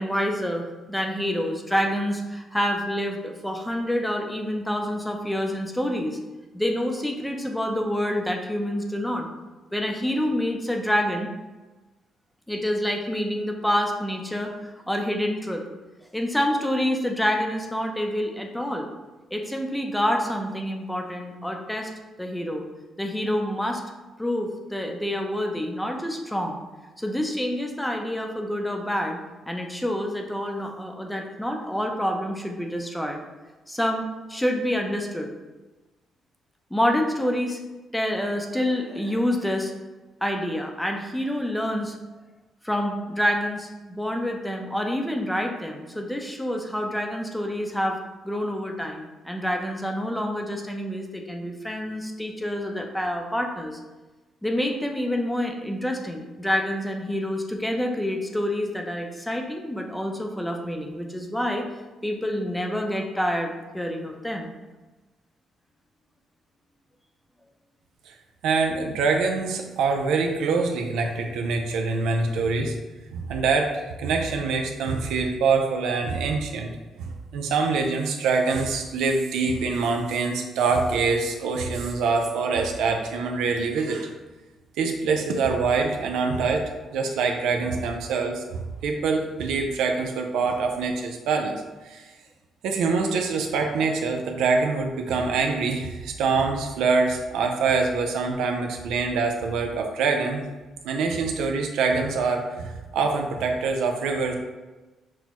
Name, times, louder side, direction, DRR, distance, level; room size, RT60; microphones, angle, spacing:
voice 1, 0.0-6.2 6.5-9.3 9.7-11.3 12.5-15.6 16.1-18.9 19.3-21.9 22.2-22.6 23.0-23.8 24.2-26.6 27.0-29.2 29.5-33.2 33.7-35.3 36.7-37.6 37.9-39.7 40.2-42.0 42.6-48.0 48.2-53.8 54.4-61.7 62.0-64.5, equal, 5° left, 2 dB, 0.6 m, -27 dB
voice 2, 68.4-72.7 73.1-76.7 77.0-84.1 84.8-91.6 91.8-92.1 92.6-100.5 100.8-104.3, right 4 dB, 90° right, 3 dB, 0.5 m, -25 dB
6.1 x 2.2 x 3.0 m, 1.2 s
cardioid pair, 90°, 0 cm